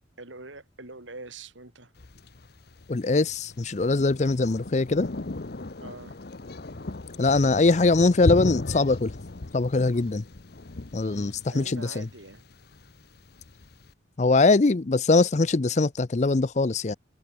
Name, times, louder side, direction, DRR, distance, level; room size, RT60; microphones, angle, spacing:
voice 1, 0.2-1.9 5.8-6.2 11.1-12.4, right 2 dB, 80° right, 5.3 m, -44 dB
Thunder, 2.0-13.9, left 2 dB, 55° left, 0.9 m, -36 dB
voice 2, 2.9-5.1 7.2-9.1 9.5-10.2 10.9-12.1 14.2-16.9, left 3 dB, 35° left, 0.5 m, -22 dB
head